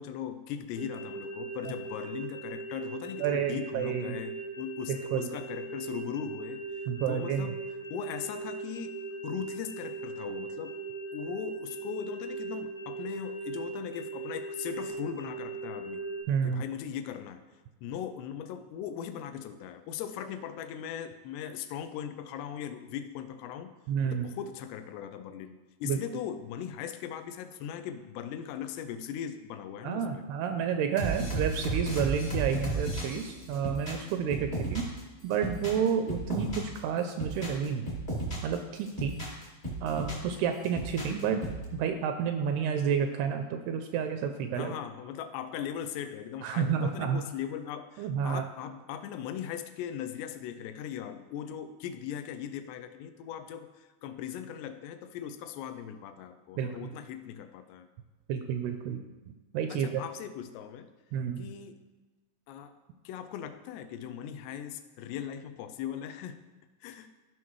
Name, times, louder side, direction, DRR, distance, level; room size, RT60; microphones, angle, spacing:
voice 1, 0.0-6.6 7.1-7.6 7.9-9.0 9.2-10.7 11.1-16.0 16.4-17.5 17.8-23.7 24.1-30.2 34.7-34.8 44.6-57.9 59.7-60.9 61.4-61.8 62.5-62.7 63.1-66.4 66.8-67.1, left 9 dB, 85° left, 9 dB, 2.7 m, -39 dB
sound 1, 0.8-16.2, right 3 dB, 60° left, 1.9 m, -39 dB
voice 2, 3.2-4.2 4.9-5.3 6.9-7.5 16.3-16.6 23.9-24.3 25.8-26.0 29.8-34.9 35.2-37.9 38.4-39.2 39.8-41.4 41.7-44.7 46.4-47.2 48.0-48.4 56.6-56.9 58.3-59.0 59.5-60.0 61.1-61.5, right 7 dB, 85° right, 6 dB, 2.3 m, -30 dB
sound 2, 31.0-35.0 35.3-36.8 37.1-38.5 38.9-40.3 40.6-41.6, right 2 dB, 40° left, 0.7 m, -34 dB
14.0 x 5.7 x 3.1 m, 1.2 s
omnidirectional pair, 4.8 m